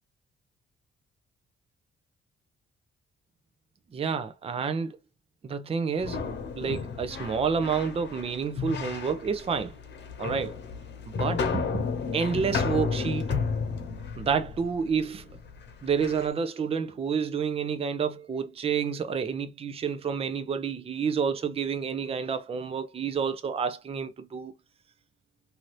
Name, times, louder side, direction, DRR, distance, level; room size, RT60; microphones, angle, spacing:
voice 1, 3.9-5.0 5.4-6.2 6.5-9.7 10.2-10.6 11.2-11.6 12.1-13.4 14.2-15.4 15.8-24.5, right 6 dB, 30° right, 0.5 m, -29 dB
sound 1, 6.0-16.3, left 5 dB, 65° left, 1.0 m, -33 dB
2.8 x 2.6 x 3.1 m
cardioid pair, 90°, 20 cm